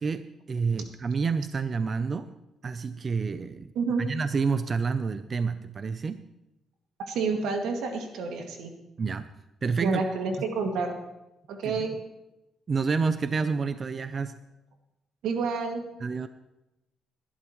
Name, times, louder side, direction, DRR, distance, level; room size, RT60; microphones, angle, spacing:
voice 1, 0.0-2.3 2.6-3.7 4.0-6.2 9.0-9.3 9.6-10.0 11.6-11.7 12.7-14.3 16.0-16.3, right 5 dB, 40° right, 11 dB, 0.5 m, -28 dB
voice 2, 7.1-8.7 9.8-10.9 11.5-11.9 15.2-15.8, right 4 dB, 85° right, 3 dB, 2.1 m, -29 dB
20.0 x 11.0 x 3.1 m, 0.93 s
cardioid pair, 90°, 0 cm